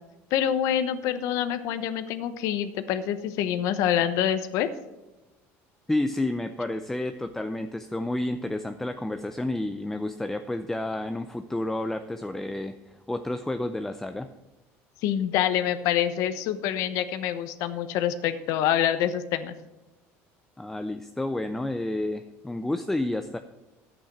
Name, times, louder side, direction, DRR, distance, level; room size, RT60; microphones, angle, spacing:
voice 1, 0.3-4.7 15.0-19.5, left 10 dB, 70° left, 11 dB, 1.0 m, -26 dB
voice 2, 5.9-12.7 13.1-14.3 20.6-23.4, left 1 dB, 5° left, 8 dB, 0.5 m, -30 dB
10.5 x 8.6 x 6.0 m, 1.0 s
cardioid pair, 120°, 6 cm